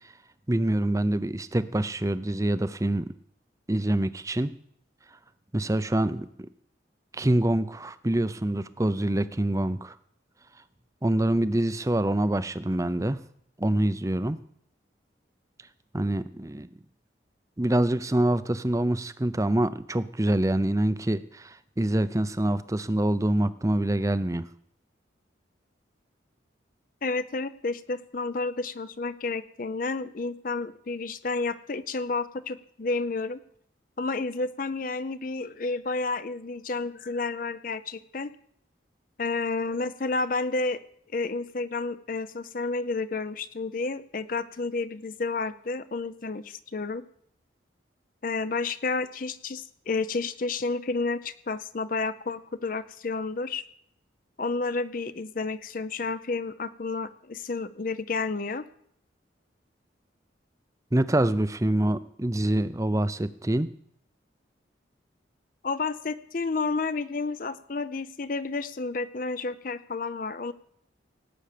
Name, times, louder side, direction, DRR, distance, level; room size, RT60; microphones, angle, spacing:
voice 1, 0.5-3.1 3.7-4.5 5.5-6.5 7.1-9.9 11.0-13.2 13.6-14.4 15.9-16.7 17.6-24.5 60.9-63.7, right 1 dB, 15° right, 14 dB, 0.5 m, -25 dB
voice 2, 27.0-33.4 34.0-38.3 39.2-40.8 41.1-47.0 48.2-53.6 54.4-58.7 65.6-70.5, left 3 dB, 45° left, 14 dB, 0.6 m, -31 dB
18.0 x 9.0 x 6.7 m, 0.68 s
head